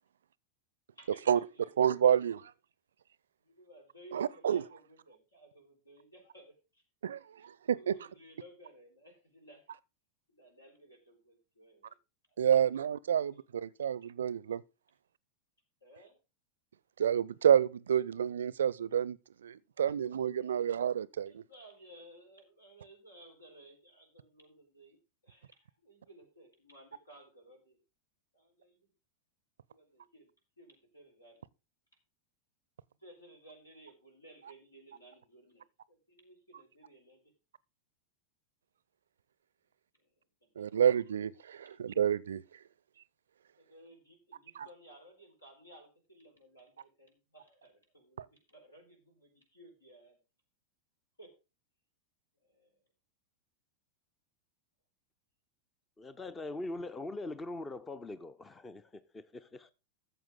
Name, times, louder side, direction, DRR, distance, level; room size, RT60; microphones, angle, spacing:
voice 1, 1.1-1.5 1.8-2.5 4.1-4.7 7.0-8.0 12.4-14.6 17.0-21.4 34.4-34.5 40.6-42.6 44.5-44.7 48.2-48.3, right 9 dB, 65° right, 0.5 m, -29 dB
voice 2, 3.6-6.5 7.7-9.6 10.3-11.9 13.1-13.2 15.8-16.2 20.4-20.7 21.3-25.0 25.2-25.5 25.8-27.8 28.3-28.7 29.7-30.3 30.6-31.3 33.0-35.6 35.9-37.2 40.6-40.7 43.6-50.2 51.2-51.3 52.5-52.7, right 1 dB, 80° left, 4.3 m, -57 dB
voice 3, 56.0-59.7, left 2 dB, 15° left, 0.6 m, -42 dB
14.0 x 7.5 x 3.7 m
figure-of-eight pair, 90°, 0 cm